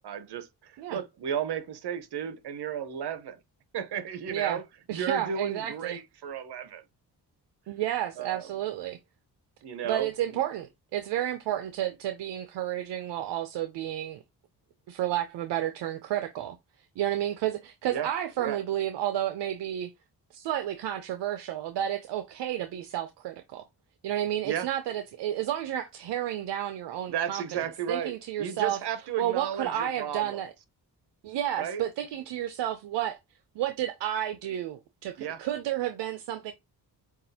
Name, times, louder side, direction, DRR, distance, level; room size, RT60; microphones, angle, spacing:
voice 1, 0.0-3.4 3.7-4.6 4.9-6.8 8.2-8.5 9.6-10.4 17.9-18.1 18.4-18.6 24.4-24.7 27.1-30.4 31.6-31.8 35.2-35.4, right 8 dB, 75° right, 1.0 m, -34 dB
voice 2, 4.3-4.6 4.9-6.0 7.7-9.0 9.8-14.2 14.9-16.6 17.0-19.9 20.3-23.6 24.0-27.5 27.9-28.8 29.2-30.5 31.2-33.2 33.6-36.5, right 12 dB, 90° right, 0.6 m, -31 dB
7.3 x 2.5 x 2.8 m
cardioid pair, 75°, 40 cm